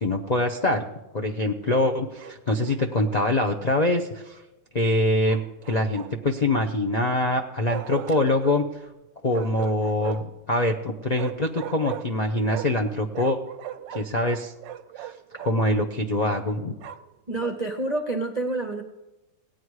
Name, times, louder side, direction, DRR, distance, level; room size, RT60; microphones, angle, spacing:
voice 1, 0.0-0.9 1.1-4.4 4.7-5.4 5.6-8.6 9.2-13.4 13.9-14.5 15.0-15.1 15.4-16.7, left 1 dB, 70° left, 2 dB, 0.4 m, -24 dB
Bark, 2.2-2.8 5.3-6.4 7.7-8.6 9.3-10.4 11.1-12.9 13.1-15.6 16.2-17.2, right 12 dB, 90° right, 1.3 m, -38 dB
voice 2, 17.3-18.8, right 2 dB, 50° right, 5 dB, 0.5 m, -28 dB
17.5 x 9.0 x 4.8 m, 1.0 s
omnidirectional pair, 1.9 m